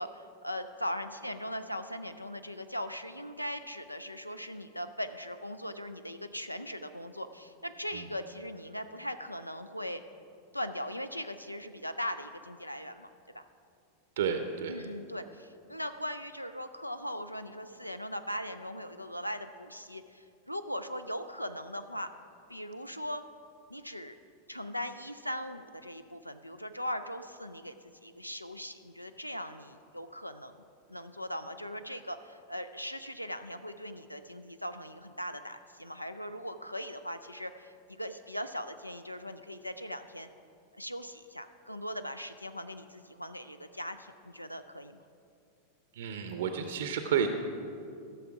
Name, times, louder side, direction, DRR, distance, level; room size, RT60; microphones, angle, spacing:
voice 1, 0.0-10.0 10.5-13.1 13.3-13.4 14.7-22.1 22.5-23.2 23.7-24.2 24.5-30.6 30.9-40.3 40.7-45.0, equal, 90° left, 10 dB, 0.4 m, -39 dB
voice 2, 14.2-14.7 45.9-47.3, right 7 dB, 60° right, 7 dB, 0.6 m, -31 dB
14.0 x 6.9 x 4.8 m, 2.4 s
figure-of-eight pair, 90°, 0 cm